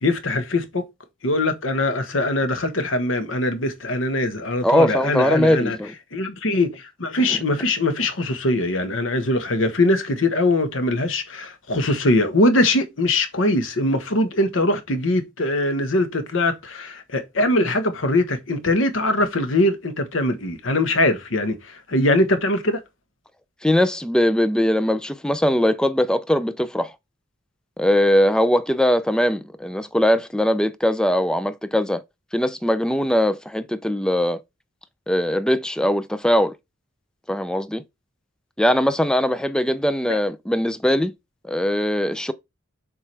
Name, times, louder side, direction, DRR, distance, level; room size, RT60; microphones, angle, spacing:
voice 1, 0.0-0.8 1.2-5.8 6.1-22.8 40.1-40.2, left 1 dB, 85° left, 1.2 m, -22 dB
voice 2, 4.6-5.9 23.6-26.9 27.8-32.0 32.3-34.4 35.1-36.5 37.3-37.8 38.6-41.1 41.4-42.3, left 1 dB, 5° left, 0.4 m, -20 dB
7.1 x 4.6 x 3.3 m
head